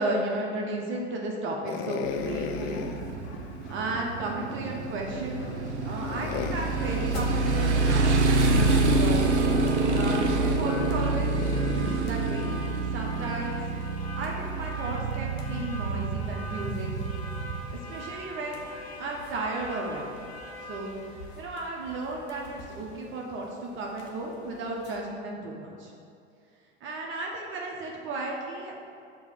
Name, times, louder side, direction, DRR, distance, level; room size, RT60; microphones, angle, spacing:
voice 1, 0.0-2.9 3.7-5.5 5.8-9.2 9.9-11.3 12.0-12.5 12.9-13.6 14.2-17.0 17.7-18.7 19.0-20.2 20.7-20.9 21.4-25.9 26.8-28.8, right 2 dB, 35° right, -1 dB, 0.9 m, -34 dB
sound 1, 1.7-4.0 4.7-4.8 5.3-9.2, left 8 dB, 40° left, 0.4 m, -38 dB
Motorcycle, 2.0-17.8, right 3 dB, 80° right, 0.7 m, -27 dB
sound 2, 6.6-25.0, equal, 65° left, 1.1 m, -43 dB
6.4 x 3.0 x 5.2 m, 2.4 s
hypercardioid pair, 85°, 34 cm